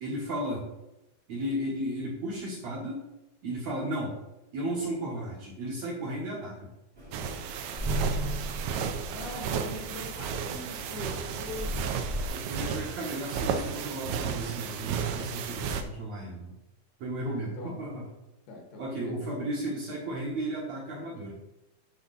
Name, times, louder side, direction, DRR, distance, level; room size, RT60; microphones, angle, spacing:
voice 1, 0.0-0.7 1.3-3.0 3.4-4.1 4.5-6.7 12.3-16.5 17.0-18.0 18.8-21.3, right 1 dB, 60° right, -3 dB, 2.0 m, -34 dB
sound 1, 6.9-12.3, equal, 35° right, 0.8 m, -41 dB
sound 2, 7.1-15.8, right 7 dB, 90° right, 2.7 m, -34 dB
voice 2, 7.7-8.2 9.1-11.9 17.2-17.8 18.5-19.3, left 2 dB, 75° left, 1 dB, 3.3 m, -43 dB
sound 3, 7.8-10.0, right 1 dB, 25° left, 0.9 m, -33 dB
8.2 x 5.8 x 4.0 m, 0.93 s
omnidirectional pair, 4.5 m